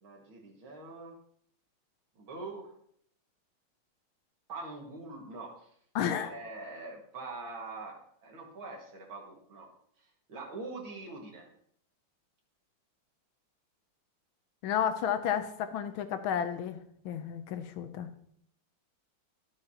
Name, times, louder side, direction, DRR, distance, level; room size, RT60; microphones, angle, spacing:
voice 1, 0.0-1.1 2.2-2.7 4.5-5.5 6.2-9.7 10.3-11.5, right 3 dB, 70° right, 0 dB, 2.6 m, -43 dB
voice 2, 5.9-6.3 14.6-16.8 17.0-18.1, left 9 dB, 75° left, 9 dB, 1.5 m, -32 dB
12.5 x 7.8 x 2.8 m, 0.66 s
omnidirectional pair, 2.3 m